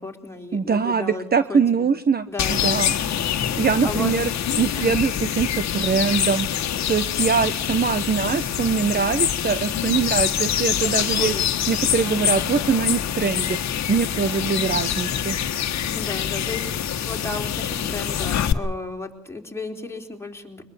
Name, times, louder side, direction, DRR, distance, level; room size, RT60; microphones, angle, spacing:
voice 1, 0.0-1.9 2.3-3.0 3.8-4.1 4.8-5.0 10.8-11.4 12.1-12.3 15.9-20.6, left 3 dB, 10° left, 2 dB, 4.1 m, -34 dB
voice 2, 0.5-2.9 3.6-4.3 4.6-6.5 6.9-11.4 11.7-13.6 13.9-15.4, right 6 dB, 30° right, 12 dB, 1.0 m, -23 dB
sound 1, 2.4-18.5, left 9 dB, 65° left, 1.6 m, -25 dB
23.5 x 21.0 x 7.2 m, 0.73 s
cardioid pair, 90°, 30 cm